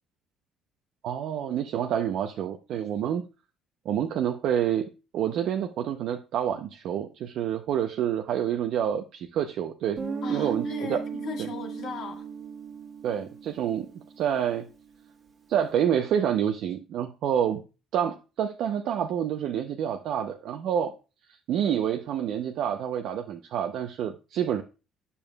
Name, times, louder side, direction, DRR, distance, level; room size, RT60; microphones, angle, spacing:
voice 1, 1.0-3.2 3.8-10.0 10.3-11.0 11.4-11.5 13.0-13.9 14.2-14.7 15.5-17.6 17.9-20.9 21.5-24.6, right 9 dB, 60° right, 0.6 m, -28 dB
Guitar, 10.0-14.5, right 6 dB, 30° right, 1.6 m, -36 dB
voice 2, 10.2-12.3, left 6 dB, 55° left, 1.6 m, -38 dB
11.0 x 6.9 x 2.3 m
cardioid pair, 155°, 0 cm